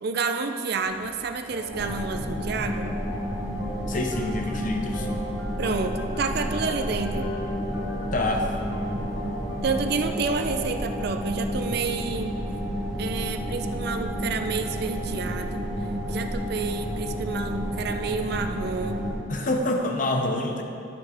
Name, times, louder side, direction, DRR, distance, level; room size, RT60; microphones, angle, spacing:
voice 1, 0.0-3.0 5.6-7.3 9.6-12.3 13.0-15.7 16.1-19.0, right 4 dB, 50° right, 6 dB, 0.5 m, -29 dB
sound 1, 0.8-12.4, left 1 dB, 60° left, 1.0 m, -41 dB
sound 2, 1.7-19.2, equal, ahead, 2.1 m, -31 dB
voice 2, 3.9-5.1 8.1-8.5 19.3-20.6, left 1 dB, 40° left, 3 dB, 0.8 m, -26 dB
12.0 x 6.6 x 3.5 m, 2.6 s
head